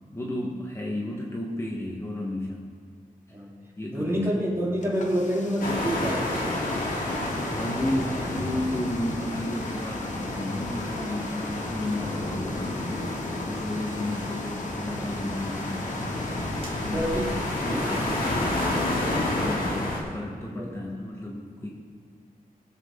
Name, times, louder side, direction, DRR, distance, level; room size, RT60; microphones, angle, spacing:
voice 1, 0.1-2.7 3.3-3.4 3.8-4.3 7.4-12.9 13.5-15.8 16.6-17.2 17.6-18.1 19.4-21.7, left 1 dB, 20° left, -3 dB, 1.4 m, -33 dB
voice 2, 3.9-6.8 16.9-17.3 17.6-19.2 20.5-20.9, equal, 15° right, -5 dB, 2.9 m, -29 dB
sound 1, 4.8-19.4, left 3 dB, 55° left, 1.0 m, -44 dB
sound 2, 5.6-20.0, left 1 dB, 75° left, 2.8 m, -30 dB
sound 3, 15.4-21.0, equal, 40° right, 2.2 m, -46 dB
20.5 x 7.7 x 3.8 m, 2.1 s
wide cardioid pair, 135°, 15 cm